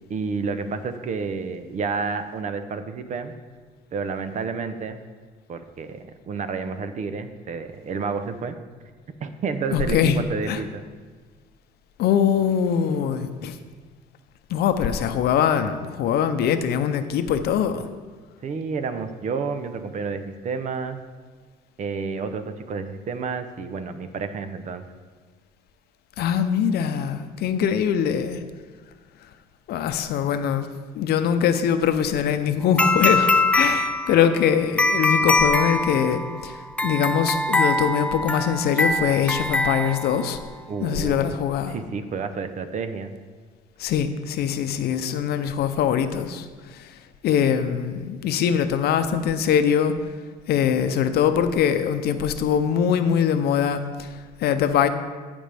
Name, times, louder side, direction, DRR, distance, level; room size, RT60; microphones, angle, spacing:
voice 1, 0.1-3.3 3.9-5.0 5.5-8.6 9.2-10.8 18.4-21.0 21.8-24.8 40.7-41.3 41.7-43.1, right 5 dB, 45° right, 9 dB, 0.7 m, -30 dB
voice 2, 9.7-10.2 10.5-10.6 12.0-13.6 14.5-17.9 26.2-28.4 29.7-30.7 30.9-36.6 36.8-40.4 40.8-41.8 43.8-46.9 47.2-49.9 50.5-54.9, left 8 dB, 70° left, 9 dB, 0.6 m, -22 dB
sound 1, 32.8-40.5, left 2 dB, 5° left, 0.3 m, -23 dB
14.5 x 5.2 x 3.4 m, 1.5 s
cardioid pair, 110°, 17 cm